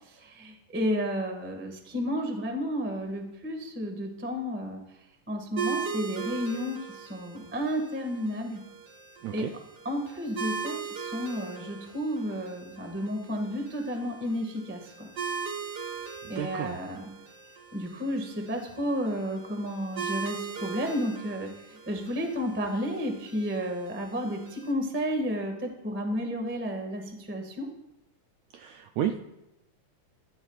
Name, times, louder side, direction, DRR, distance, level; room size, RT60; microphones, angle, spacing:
voice 1, 0.1-4.8 5.3-8.6 9.3-9.5 9.8-15.1 16.3-17.1 17.7-27.7, equal, 15° right, 3 dB, 0.4 m, -32 dB
sound 1, 5.6-24.7, right 6 dB, 65° right, 1.1 m, -39 dB
voice 2, 9.2-9.5 16.2-16.8 28.5-29.2, right 10 dB, 80° right, 5 dB, 1.6 m, -32 dB
16.5 x 13.5 x 2.4 m, 0.93 s
omnidirectional pair, 3.7 m